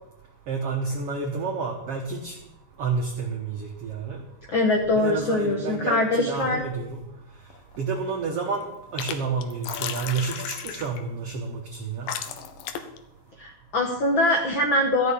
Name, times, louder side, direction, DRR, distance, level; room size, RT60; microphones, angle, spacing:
voice 1, 0.5-2.4 2.8-4.2 4.9-7.0 7.8-12.1, right 4 dB, 60° right, 0 dB, 1.8 m, -30 dB
voice 2, 4.5-6.6 13.4-15.1, left 2 dB, 60° left, 2 dB, 1.3 m, -23 dB
sound 1, 7.5-8.0 8.3-9.1 9.4-11.0 11.7-11.8 12.1-13.0, left 9 dB, 85° left, 2.6 m, -34 dB
13.5 x 6.4 x 8.3 m, 0.91 s
omnidirectional pair, 3.9 m